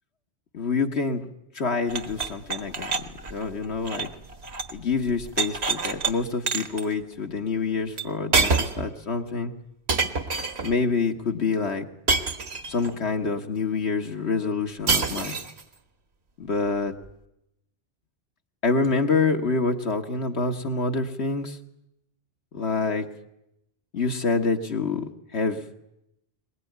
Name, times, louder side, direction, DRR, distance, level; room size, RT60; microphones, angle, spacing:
voice 1, 0.5-1.2 1.6-2.9 3.3-4.1 4.7-9.5 10.6-11.8 12.7-15.4 16.4-16.9 18.6-21.6 22.5-23.1 23.9-25.6, left 4 dB, 70° left, 3 dB, 1.9 m, -26 dB
sound 1, 1.9-4.8 5.1-6.1 6.5-6.9 8.0-8.1 8.3-8.9 9.9-10.8 12.1-12.9 14.9-15.6, right 4 dB, 70° right, 1.7 m, -26 dB
22.0 x 21.0 x 9.4 m, 0.82 s
omnidirectional pair, 1.1 m